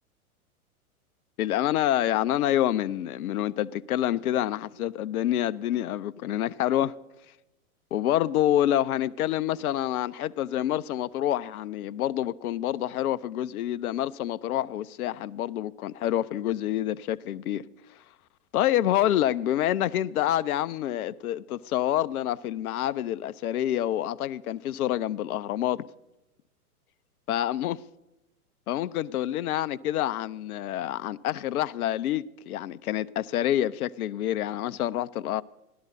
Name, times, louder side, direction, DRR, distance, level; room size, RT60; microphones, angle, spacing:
voice 1, 1.4-6.9 7.9-17.6 18.5-25.9 27.3-27.8 28.7-35.4, left 12 dB, 70° left, 0.6 m, -27 dB
17.0 x 12.0 x 4.1 m
hypercardioid pair, 110°, 45 cm